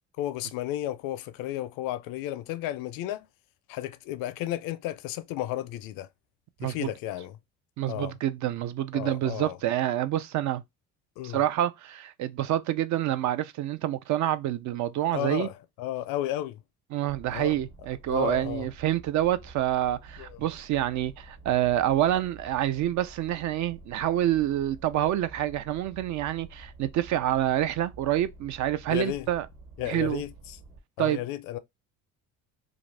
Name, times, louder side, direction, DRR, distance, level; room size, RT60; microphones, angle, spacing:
voice 1, 0.2-3.3 3.7-6.1 6.6-7.4 7.9-8.1 8.9-9.6 11.2-11.4 15.1-16.6 17.3-17.5 18.1-18.7 20.2-20.4 28.9-29.3 29.8-30.6 31.0-31.6, left 13 dB, 80° left, 0.5 m, -33 dB
voice 2, 6.6-6.9 7.8-10.6 11.2-15.5 16.9-29.5 29.8-30.2 31.0-31.2, right 12 dB, 60° right, 0.5 m, -27 dB
sound 1, 17.1-30.8, right 3 dB, 45° right, 1.3 m, -49 dB
2.5 x 2.5 x 3.2 m
cardioid pair, 100°, 34 cm